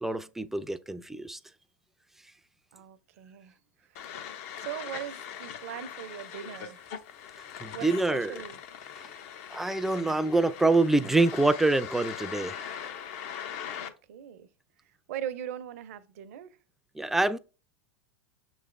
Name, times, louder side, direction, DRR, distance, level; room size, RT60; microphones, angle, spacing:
voice 1, 0.0-1.4 7.6-8.3 9.5-12.8 17.0-17.4, right 2 dB, 5° right, 0.3 m, -26 dB
voice 2, 2.7-3.6 3.9-4.1 4.6-6.9 7.7-8.6 13.8-14.5 14.8-16.6, right 10 dB, 65° right, 0.5 m, -40 dB
sound 1, 4.0-13.9, left 9 dB, 60° left, 0.6 m, -41 dB
6.5 x 3.1 x 2.5 m
hypercardioid pair, 95°, 8 cm